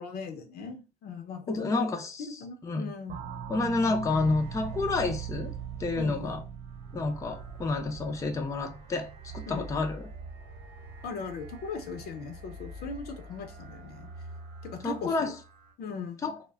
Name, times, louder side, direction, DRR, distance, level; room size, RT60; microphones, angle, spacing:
voice 1, 0.0-1.9 2.2-3.2 6.0-6.5 9.5-9.7 11.0-14.1 14.6-15.3 15.8-16.4, left 5 dB, 70° left, 0.6 m, -39 dB
voice 2, 1.5-2.9 3.5-5.5 5.8-6.4 6.9-10.0 14.8-15.3 16.2-16.3, left 3 dB, 20° left, 0.4 m, -29 dB
sound 1, 3.1-9.4, right 6 dB, 50° right, 0.5 m, -43 dB
sound 2, 4.1-15.7, right 5 dB, 80° right, 1.0 m, -44 dB
2.2 x 2.1 x 3.4 m
cardioid pair, 110°, 17 cm